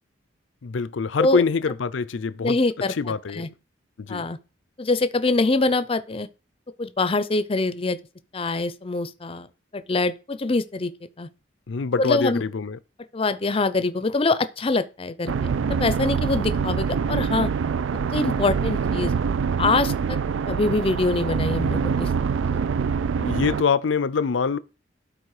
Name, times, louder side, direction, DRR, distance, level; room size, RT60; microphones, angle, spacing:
voice 1, 0.6-2.6 3.0-3.5 4.0-4.2 11.7-12.8 23.2-24.6, left 5 dB, 75° left, 0.5 m, -24 dB
voice 2, 2.4-2.9 3.3-3.5 4.1-4.4 4.8-6.3 6.8-8.0 8.3-9.5 9.7-10.9 11.2-11.3 12.0-12.4 13.1-15.3 15.7-17.5 18.1-19.1 19.6-20.2 20.5-22.1 22.5-22.6, left 3 dB, 30° left, 0.6 m, -24 dB
sound 1, 15.3-23.6, right 6 dB, 80° right, 0.4 m, -25 dB
12.5 x 4.2 x 4.9 m
head